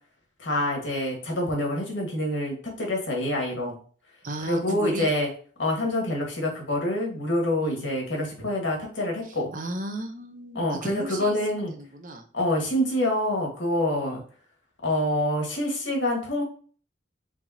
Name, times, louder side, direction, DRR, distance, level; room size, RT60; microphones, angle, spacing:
voice 1, 0.4-3.8 4.4-5.3 5.6-9.5 10.5-11.7 12.3-14.2 14.8-16.4, left 1 dB, 85° left, 0 dB, 1.8 m, -26 dB
voice 2, 4.2-5.1 7.6-7.9 9.3-12.2 14.0-14.2, right 2 dB, 45° right, 5 dB, 0.7 m, -35 dB
4.9 x 3.5 x 2.8 m, 0.42 s
head